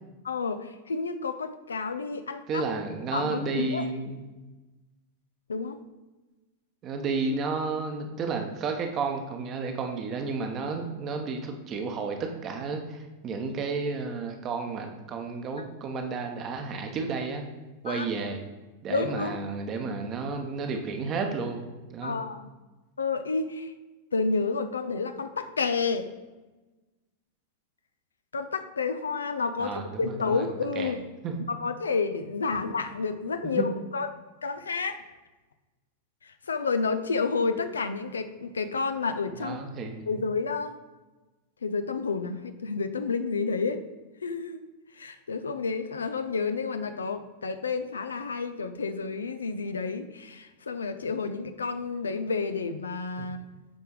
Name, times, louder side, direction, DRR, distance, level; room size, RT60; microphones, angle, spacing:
voice 1, 0.2-2.6 3.1-3.8 5.5-5.8 17.9-18.0 18.9-19.4 22.0-22.5 23.0-23.7 24.1-26.1 28.3-31.1 31.5-34.1 34.4-35.0 36.5-39.6 40.1-40.7 41.6-43.8 44.2-44.6 45.0-53.4, left 4 dB, 70° left, 9 dB, 0.5 m, -30 dB
voice 2, 2.5-4.2 6.8-17.4 17.8-18.4 18.8-21.6 21.9-22.2 29.6-30.9 31.2-31.4 33.4-33.7 39.4-40.2 53.2-53.3, right 4 dB, 30° right, 4 dB, 1.1 m, -32 dB
7.7 x 4.6 x 4.9 m, 1.2 s
figure-of-eight pair, 90°, 0 cm